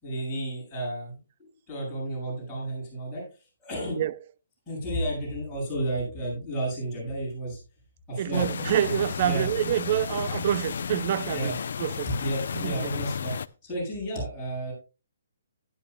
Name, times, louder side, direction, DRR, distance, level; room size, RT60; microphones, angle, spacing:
voice 1, 0.0-1.2 1.7-3.2 3.6-4.0 4.7-7.6 8.1-8.7 9.2-9.5 11.3-11.5 12.2-13.3 13.6-14.7, right 1 dB, 5° left, 7.9 m, -32 dB
voice 2, 8.2-11.5 11.8-12.1 12.5-13.0, right 11 dB, 35° right, 0.4 m, -27 dB
sound 1, 8.3-13.5, left 6 dB, 60° left, 0.5 m, -33 dB
15.5 x 11.0 x 2.3 m
hypercardioid pair, 170°, 0 cm